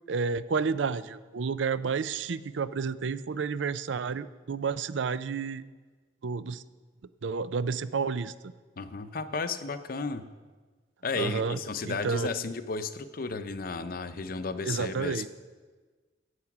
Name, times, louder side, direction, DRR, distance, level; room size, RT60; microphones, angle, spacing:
voice 1, 0.1-5.6 6.2-6.6 7.2-8.5 11.1-11.6 11.8-12.3 14.7-15.3, right 5 dB, 80° right, 15 dB, 0.5 m, -30 dB
voice 2, 8.8-10.2 11.0-15.3, left 4 dB, 50° left, 11 dB, 0.7 m, -33 dB
14.0 x 8.0 x 6.0 m, 1.4 s
head